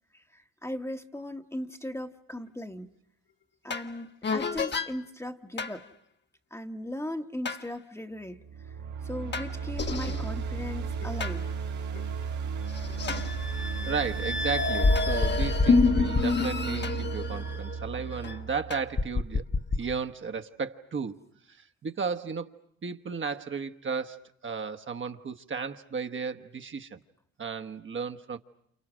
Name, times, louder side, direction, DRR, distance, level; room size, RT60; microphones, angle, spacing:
voice 1, 0.1-2.9 3.6-5.9 6.5-8.4 8.7-8.8 9.0-11.4, left 1 dB, 10° left, 1.2 m, -38 dB
sound 1, 3.7-3.9 4.2-4.9 5.6-5.8 7.5-7.6 9.3-11.4 12.0-12.1 12.7-18.4 18.7-19.8, left 4 dB, 35° left, 1.3 m, -28 dB
sound 2, 8.4-19.4, right 6 dB, 75° right, 2.0 m, -35 dB
voice 2, 13.9-19.4 19.8-21.2 21.5-22.5 22.8-27.0 27.4-28.4, right 5 dB, 40° right, 1.3 m, -34 dB
29.5 x 28.5 x 6.3 m
cardioid pair, 90°, 30 cm